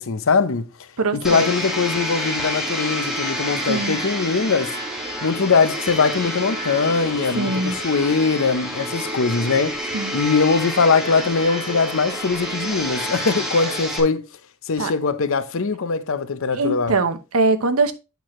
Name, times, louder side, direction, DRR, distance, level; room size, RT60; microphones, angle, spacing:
voice 1, 0.0-4.7 5.2-14.3 14.6-17.0, left 4 dB, 65° left, 0.7 m, -21 dB
voice 2, 1.0-1.5 3.7-4.0 7.3-7.8 9.9-10.1 14.8-14.9 16.5-17.9, right 3 dB, 80° right, 1.0 m, -22 dB
Domestic sounds home sounds, 1.2-14.0, equal, ahead, 1.7 m, -28 dB
8.2 x 6.1 x 3.1 m
head